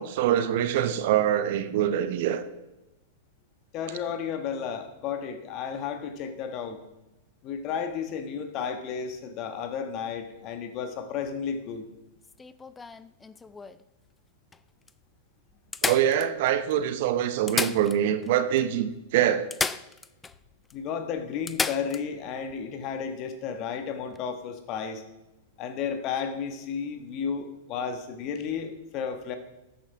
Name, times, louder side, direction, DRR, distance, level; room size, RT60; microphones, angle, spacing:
voice 1, 0.0-2.5 15.8-19.5, right 10 dB, 55° right, 11 dB, 0.9 m, -24 dB
voice 2, 3.7-6.8 7.4-11.9 20.7-25.0 25.6-29.4, left 7 dB, 40° left, 7 dB, 1.5 m, -33 dB
sound 1, 12.2-13.8 14.5-14.6 14.9-15.0 15.7-16.7 17.3-18.3 18.6-18.7 19.5-20.4 20.7-20.8 21.5-22.0 24.0-24.2, left 4 dB, 15° left, 0.4 m, -32 dB
13.0 x 8.9 x 3.5 m, 0.97 s
figure-of-eight pair, 100°, 0 cm